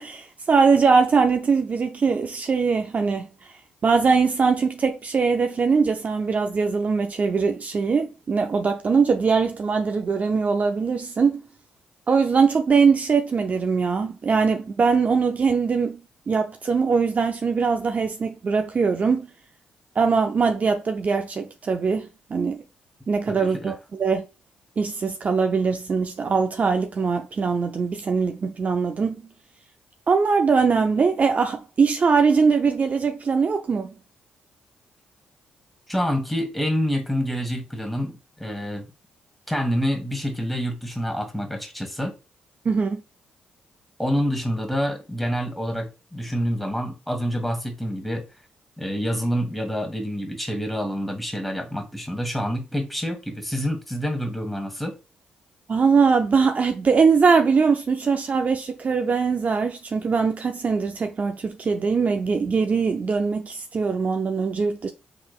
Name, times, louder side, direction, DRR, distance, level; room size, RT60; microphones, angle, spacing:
voice 1, 0.0-3.3 3.8-11.4 12.1-16.0 16.3-19.3 20.0-22.6 23.1-24.3 24.8-29.2 30.1-33.9 42.6-43.0 55.7-64.9, right 5 dB, 45° right, 0.5 m, -21 dB
voice 2, 23.3-23.7 35.9-38.9 39.5-42.1 44.0-48.3 48.8-55.0, equal, ahead, 1.5 m, -27 dB
5.0 x 3.3 x 2.3 m
hypercardioid pair, 50°, 3 cm